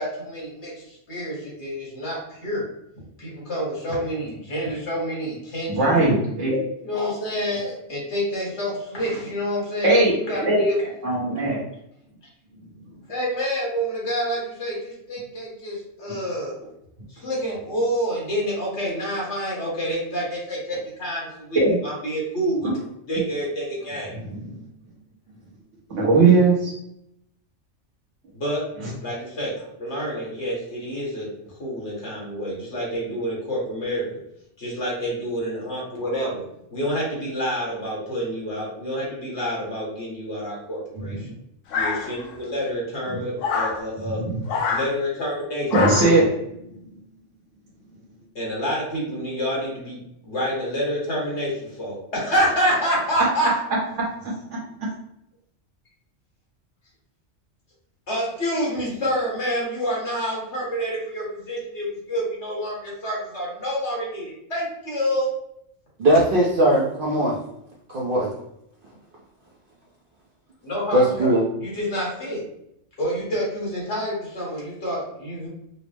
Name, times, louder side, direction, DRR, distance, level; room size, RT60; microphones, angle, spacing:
voice 1, 0.0-2.6 3.2-5.9 6.8-10.8 13.1-16.6 17.1-22.7 23.1-24.1 28.3-28.6 29.0-31.3 31.6-34.0 34.6-36.4 36.7-41.3 41.7-44.2 44.7-45.7 48.3-53.5 58.1-65.3 70.6-72.4 73.0-75.5, equal, 65° left, -4 dB, 1.8 m, -28 dB
voice 2, 5.7-6.7 9.8-10.1 10.4-10.6 11.0-11.6 21.5-21.8 25.9-26.7 41.1-41.2 44.2-44.4 45.7-46.3, right 3 dB, 70° right, -6 dB, 1.3 m, -18 dB
sound 1, 41.7-42.4 43.4-43.8 44.5-44.9 45.7-46.2, left 5 dB, 85° left, 0.9 m, -25 dB
voice 3, 66.0-67.4 67.9-68.3 70.9-71.5, right 1 dB, 50° right, -5 dB, 0.8 m, -19 dB
5.1 x 2.0 x 3.3 m, 0.76 s
omnidirectional pair, 1.3 m